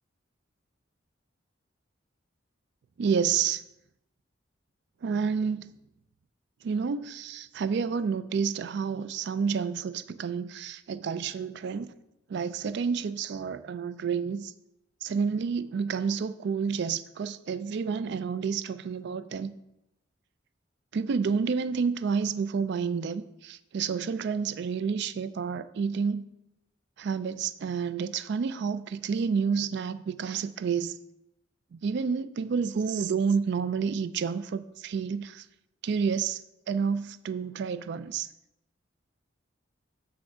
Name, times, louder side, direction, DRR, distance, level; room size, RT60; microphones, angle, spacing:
voice 1, 3.0-3.6 5.0-5.7 6.6-11.9 12.3-14.5 15.0-19.5 20.9-26.2 27.0-31.0 31.7-35.5 35.8-36.4 36.7-38.3, right 6 dB, 60° right, 0.3 m, -29 dB
8.5 x 3.5 x 4.9 m
head